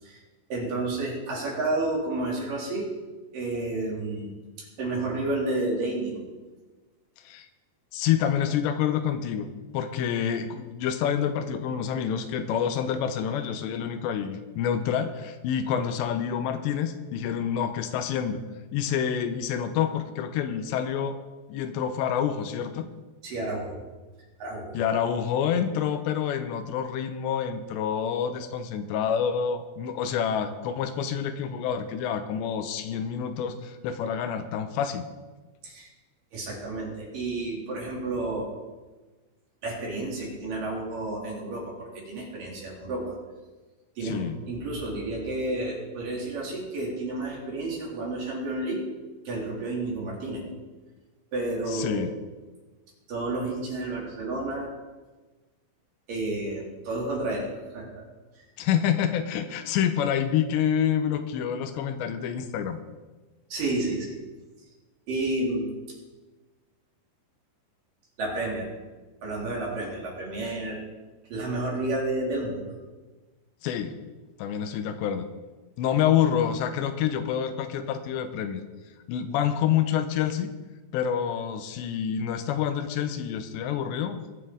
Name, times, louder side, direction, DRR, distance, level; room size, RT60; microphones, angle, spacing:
voice 1, 0.5-2.9 3.3-4.3 4.6-6.2 23.2-23.8 24.4-24.7 35.6-35.9 36.3-38.5 39.6-43.2 44.0-48.8 49.3-50.4 51.3-52.1 53.1-54.7 56.1-57.5 57.7-58.0 63.5-64.2 65.1-65.7 68.2-68.7 69.2-70.8 71.3-72.8, right 2 dB, 55° right, -3 dB, 4.2 m, -31 dB
voice 2, 7.9-9.5 9.7-18.4 18.7-21.2 21.5-22.9 24.7-35.1 44.0-44.4 51.7-52.1 58.6-62.8 73.6-73.9 74.4-75.3 75.8-78.6 79.1-80.5 80.9-84.2, left 8 dB, 85° left, 9 dB, 2.9 m, -27 dB
21.5 x 8.8 x 3.8 m, 1.2 s
omnidirectional pair, 5.1 m